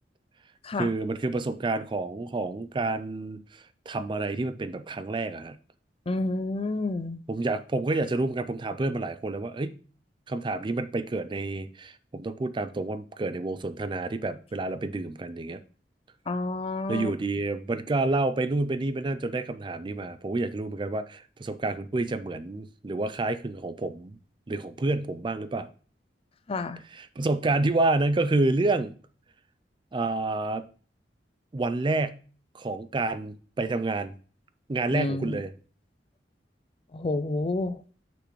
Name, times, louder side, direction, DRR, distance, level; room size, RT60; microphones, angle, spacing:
voice 1, 0.8-5.6 7.3-9.8 10.3-15.6 16.9-24.2 24.5-25.7 27.2-28.9 29.9-30.6 31.5-32.2 32.5-34.1 34.7-35.5, right 2 dB, 25° right, 0.4 m, -29 dB
voice 2, 6.1-7.2 16.3-17.1 26.5-26.8 34.9-35.4 36.9-37.8, left 2 dB, 35° left, 0.4 m, -29 dB
6.6 x 6.0 x 3.1 m
head